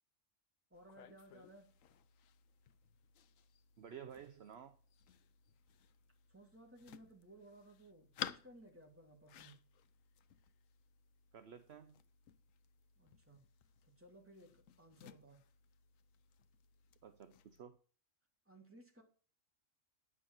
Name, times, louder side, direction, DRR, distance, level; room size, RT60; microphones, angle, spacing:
sound 1, 0.7-17.6, left 10 dB, 90° left, 1.1 m, -55 dB
voice 1, 0.7-1.7 6.3-9.6 13.0-13.4 13.8-15.4 18.4-19.0, right 1 dB, 10° right, 3.2 m, -60 dB
voice 2, 3.8-4.8 11.3-12.0 17.0-17.8, right 8 dB, 60° right, 1.0 m, -53 dB
10.5 x 6.4 x 7.7 m
omnidirectional pair, 1.3 m